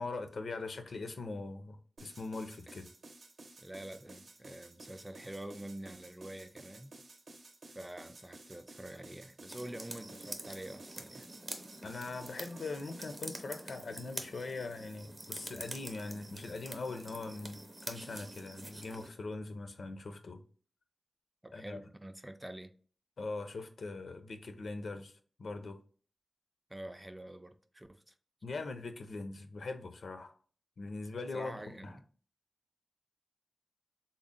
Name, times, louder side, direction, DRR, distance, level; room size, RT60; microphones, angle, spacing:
voice 1, 0.0-2.9 11.8-20.4 21.5-21.8 23.2-25.1 25.4-25.8 28.4-30.3 30.8-32.0, left 3 dB, 80° left, 0.5 m, -41 dB
sound 1, 2.0-13.2, right 2 dB, 80° right, 0.7 m, -54 dB
voice 2, 3.6-6.9 7.7-11.3 21.4-22.7 26.7-28.1 31.3-32.0, right 1 dB, 10° right, 0.3 m, -46 dB
sound 2, 9.5-19.1, right 2 dB, 35° right, 0.6 m, -46 dB
3.7 x 2.0 x 3.7 m
wide cardioid pair, 110°, 0 cm